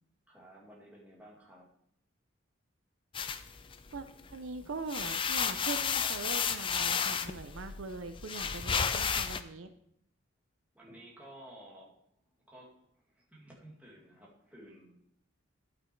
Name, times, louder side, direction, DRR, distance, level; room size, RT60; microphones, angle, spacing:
voice 1, 0.3-1.7 10.7-11.9 12.5-15.0, right 1 dB, 10° right, -4 dB, 2.1 m, -54 dB
sound 1, 3.1-4.3 4.7-9.4, left 7 dB, 25° left, 0.4 m, -32 dB
voice 2, 4.3-9.7, right 4 dB, 75° right, 9 dB, 0.6 m, -41 dB
11.0 x 6.0 x 4.5 m, 0.70 s
head